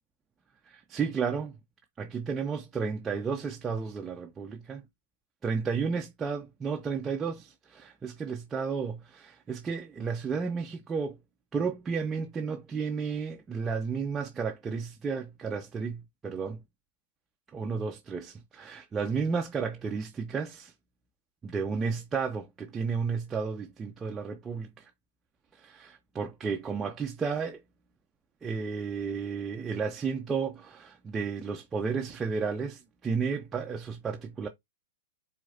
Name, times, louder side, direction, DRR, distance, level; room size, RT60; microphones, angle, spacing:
voice 1, 0.7-1.5 2.0-4.8 5.4-11.2 11.5-16.6 17.5-20.7 21.4-24.9 25.6-27.6 28.4-34.5, right 5 dB, 15° right, 0.7 m, -32 dB
4.6 x 3.9 x 2.8 m
figure-of-eight pair, 105°, 0 cm